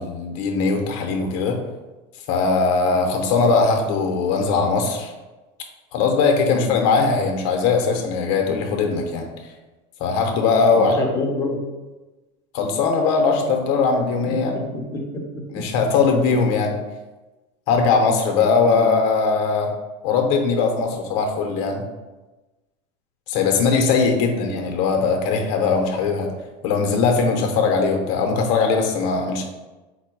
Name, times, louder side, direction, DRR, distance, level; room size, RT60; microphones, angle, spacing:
voice 1, 0.0-1.6 2.3-5.1 5.9-9.3 10.0-11.0 12.5-14.6 15.5-16.8 17.7-19.7 20.0-21.8 23.3-26.3 26.6-29.4, left 4 dB, 60° left, 3 dB, 0.8 m, -20 dB
voice 2, 10.7-11.6 14.5-15.6 17.7-17.8 18.6-18.9, left 2 dB, 20° left, -1 dB, 0.7 m, -28 dB
4.6 x 2.2 x 4.5 m, 1.2 s
cardioid pair, 160°, 16 cm